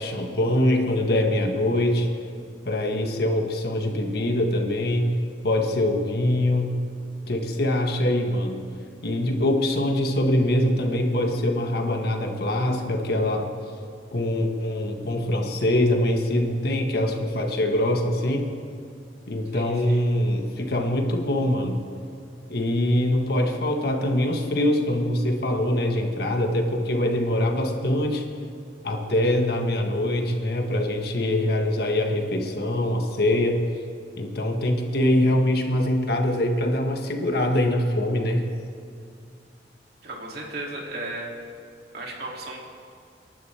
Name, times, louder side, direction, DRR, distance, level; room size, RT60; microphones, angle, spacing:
voice 1, 0.0-2.1 2.7-5.1 5.4-6.8 7.3-8.6 9.0-13.5 14.1-18.5 19.3-21.8 22.5-28.2 28.8-33.6 34.2-38.5, left 1 dB, 60° left, 3 dB, 1.6 m, -23 dB
voice 2, 19.5-20.0 40.0-41.3 41.9-42.6, right 2 dB, 60° right, -2 dB, 2.8 m, -35 dB
29.5 x 12.0 x 3.5 m, 2.3 s
head